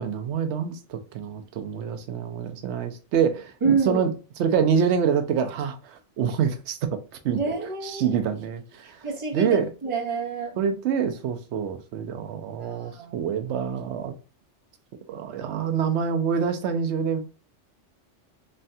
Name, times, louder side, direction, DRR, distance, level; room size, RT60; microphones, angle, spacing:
voice 1, 0.0-4.1 4.4-7.0 7.2-7.4 7.8-9.1 9.3-9.7 10.6-14.1 15.1-17.2, right 7 dB, 70° right, 0.8 m, -26 dB
voice 2, 3.6-4.1 7.4-8.1 8.8-10.6 12.6-13.2, right 4 dB, 30° right, 0.9 m, -28 dB
3.2 x 2.2 x 2.6 m
omnidirectional pair, 1.2 m